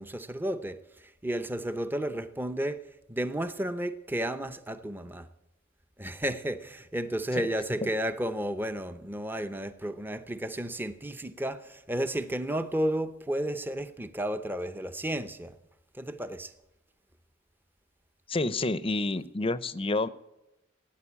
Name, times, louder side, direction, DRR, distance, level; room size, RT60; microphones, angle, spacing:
voice 1, 0.0-5.3 6.0-15.6 15.9-16.5, right 1 dB, 10° right, 0.7 m, -32 dB
voice 2, 18.3-20.1, left 2 dB, 30° left, 0.6 m, -29 dB
17.0 x 9.3 x 8.5 m
head